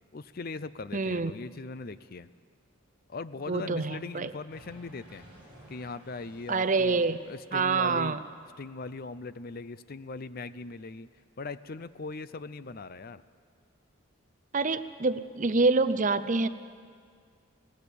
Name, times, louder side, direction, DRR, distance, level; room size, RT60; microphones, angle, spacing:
voice 1, 0.1-2.3 3.1-5.3 5.7-8.2 8.6-11.1 11.4-13.2, left 3 dB, 45° left, 15 dB, 0.5 m, -40 dB
voice 2, 0.9-1.3 3.5-4.3 6.5-7.2 7.5-8.2 14.5-16.5, right 3 dB, 35° right, 13 dB, 0.6 m, -26 dB
sound 1, 4.5-8.9, right 1 dB, 5° right, 7.3 m, -55 dB
21.0 x 17.0 x 8.4 m, 2.1 s
head